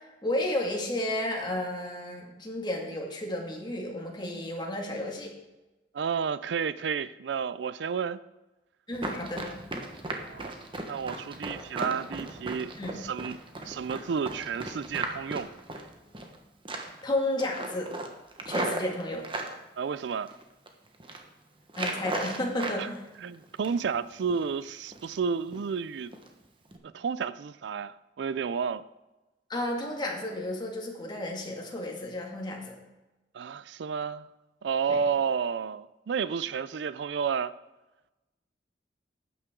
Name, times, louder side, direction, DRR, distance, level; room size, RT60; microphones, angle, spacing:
voice 1, 0.2-5.3 8.9-9.5 12.8-13.0 17.0-17.9 18.5-19.3 21.8-23.0 29.5-32.8 34.9-35.0, left 1 dB, 25° left, 2.2 m, -32 dB
voice 2, 5.9-8.2 10.3-10.5 10.9-15.5 19.8-20.4 22.8-22.9 23.2-26.1 26.8-28.8 33.3-34.3 34.6-37.5, right 6 dB, 75° right, 0.4 m, -31 dB
Run, 8.9-16.4 16.7-17.1 17.4-19.5 20.1-20.7 20.9-21.2 21.7-22.8 23.1-24.0 24.3-24.5 24.9-25.2 25.5-25.7 26.1-26.3 26.7-26.8, right 2 dB, 30° right, 1.3 m, -36 dB
12.0 x 9.3 x 3.8 m
head